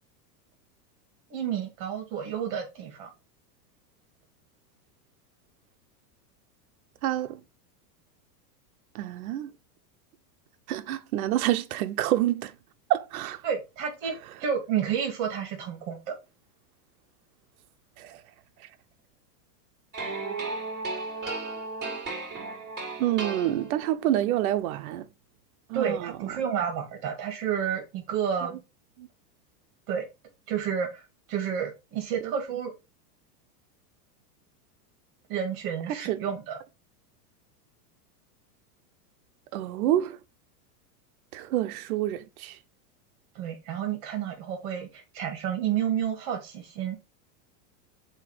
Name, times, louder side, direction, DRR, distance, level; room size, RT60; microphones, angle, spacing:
voice 1, 1.3-3.1 13.4-14.1 14.4-16.1 25.7-28.6 29.9-30.0 30.5-31.0 31.3-32.7 35.3-36.6 43.3-47.0, right 8 dB, 40° right, 2.3 m, -30 dB
voice 2, 7.0-7.4 8.9-9.5 10.7-12.5 12.9-13.4 18.0-18.2 23.0-25.1 25.7-26.1 29.0-29.1 32.2-32.3 36.0-36.2 39.5-40.2 41.3-42.6, right 13 dB, 60° right, 0.9 m, -27 dB
sound 1, 19.9-24.0, right 3 dB, 20° right, 3.6 m, -35 dB
7.4 x 3.0 x 4.9 m
supercardioid pair, 160°, 48 cm